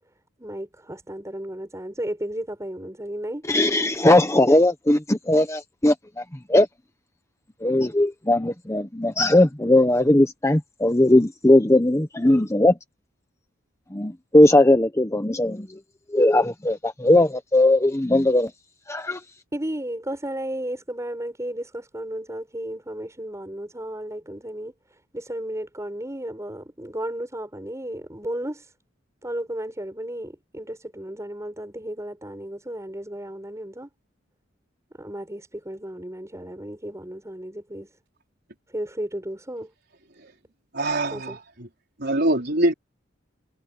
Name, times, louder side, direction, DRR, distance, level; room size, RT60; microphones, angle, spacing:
voice 1, 0.4-3.5 19.5-24.7 25.1-28.6 29.2-33.9 35.0-37.9 38.7-39.7 41.1-41.4, right 1 dB, 15° right, 6.3 m, -33 dB
voice 2, 3.5-6.2 6.5-6.7 7.6-12.7 13.9-15.8 16.1-18.5 18.9-19.2, left 1 dB, 15° left, 1.1 m, -19 dB
voice 3, 40.7-41.7 42.0-42.7, right 1 dB, 55° right, 4.6 m, -23 dB
head